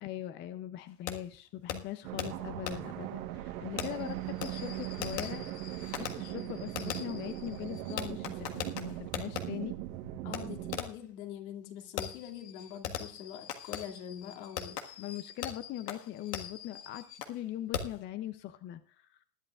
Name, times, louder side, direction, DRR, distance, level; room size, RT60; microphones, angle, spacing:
voice 1, 0.0-5.4 5.9-9.8 15.0-19.2, left 13 dB, 25° left, 0.5 m, -41 dB
Fireworks, 1.1-1.2 1.7-1.8 2.2-2.3 2.7-2.8 3.8-9.4 10.3-10.4 10.7-11.0 12.0-17.4 17.7-18.0, left 8 dB, 90° left, 1.7 m, -40 dB
sound 1, 2.0-10.8, right 13 dB, 60° right, 1.3 m, -39 dB
voice 2, 10.2-14.8, left 10 dB, 60° left, 2.5 m, -44 dB
20.5 x 10.5 x 2.4 m
hypercardioid pair, 125°, 47 cm